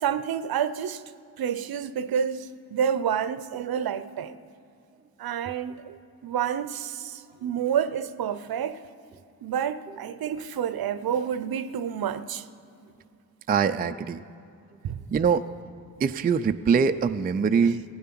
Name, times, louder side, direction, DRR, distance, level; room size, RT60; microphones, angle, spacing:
voice 1, 0.0-1.0 1.4-4.4 5.2-8.8 9.4-12.4 14.8-15.0, right 8 dB, 55° right, 0.7 m, -29 dB
voice 2, 13.5-14.2 15.1-15.5 16.0-17.8, right 6 dB, 20° right, 0.4 m, -23 dB
16.0 x 9.0 x 6.0 m
supercardioid pair, 50°, 44 cm